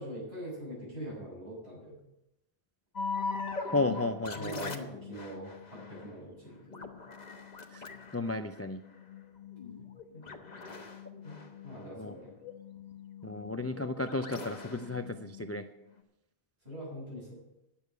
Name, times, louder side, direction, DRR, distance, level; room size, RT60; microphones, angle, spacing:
voice 1, 0.0-2.0 4.3-7.0 9.6-9.9 10.1-10.8 11.1-11.4 11.6-12.3 16.6-17.4, equal, 65° right, -9 dB, 6.4 m, -43 dB
sound 1, 3.0-16.0, left 4 dB, 40° left, 1.2 m, -42 dB
voice 2, 3.7-4.7 7.7-7.8 8.1-8.8 12.0-12.1 13.2-15.7, left 2 dB, 25° left, 8 dB, 0.3 m, -33 dB
10.0 x 7.1 x 9.3 m, 0.90 s
omnidirectional pair, 1.1 m